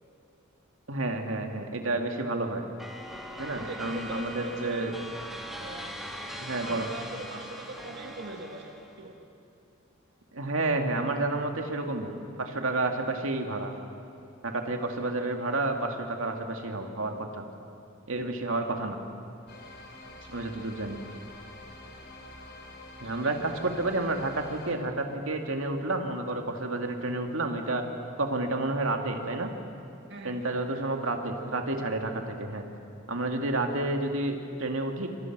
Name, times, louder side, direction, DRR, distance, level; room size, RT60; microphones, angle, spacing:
voice 1, 0.9-2.6 3.4-4.9 6.4-6.9 10.3-12.1 12.4-13.7 14.4-17.4 18.1-19.0 20.3-21.0 23.0-27.8 28.2-29.5 30.2-32.6 33.1-35.1, right 2 dB, 80° right, 4 dB, 2.3 m, -30 dB
sound 1, 2.8-9.0, equal, ahead, 2.5 m, -40 dB
voice 2, 3.5-4.9 5.6-5.9 6.6-9.2 20.2-20.4 23.0-23.5 30.1-30.5, right 2 dB, 60° right, 2 dB, 1.9 m, -42 dB
sound 2, 19.5-24.7, left 2 dB, 55° left, 4.2 m, -47 dB
28.0 x 26.5 x 6.1 m, 2.8 s
head